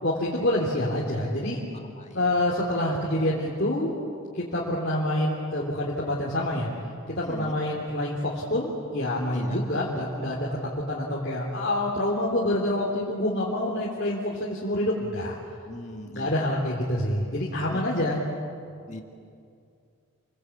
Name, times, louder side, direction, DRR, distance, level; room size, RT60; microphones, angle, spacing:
voice 1, 0.0-1.6 2.1-3.9 4.3-6.7 7.1-10.5 10.9-15.4 16.1-18.2, left 1 dB, 50° left, -5 dB, 3.3 m, -27 dB
voice 2, 1.7-2.3 7.2-7.6 9.3-9.6 15.7-16.6 17.7-18.1 18.9-19.0, left 1 dB, 30° left, 3 dB, 2.2 m, -41 dB
29.0 x 23.0 x 8.5 m, 2.4 s
head